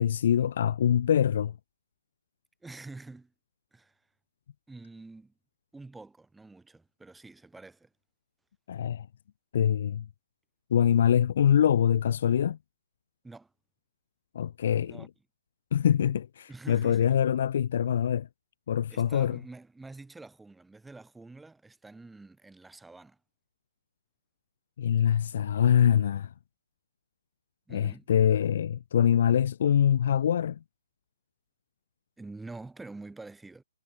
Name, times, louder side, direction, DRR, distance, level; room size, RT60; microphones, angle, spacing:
voice 1, 0.0-1.5 8.7-9.1 9.5-10.0 10.7-12.6 14.3-15.1 15.7-18.3 18.7-19.4 24.8-26.3 27.7-30.6, left 9 dB, 50° left, 0.6 m, -24 dB
voice 2, 2.6-3.3 3.7-3.9 4.7-5.3 5.7-7.9 13.2-13.5 14.8-15.1 16.5-17.2 18.9-23.2 27.7-28.1 32.2-33.6, right 3 dB, 5° right, 6.1 m, -47 dB
figure-of-eight pair, 130°, 0 cm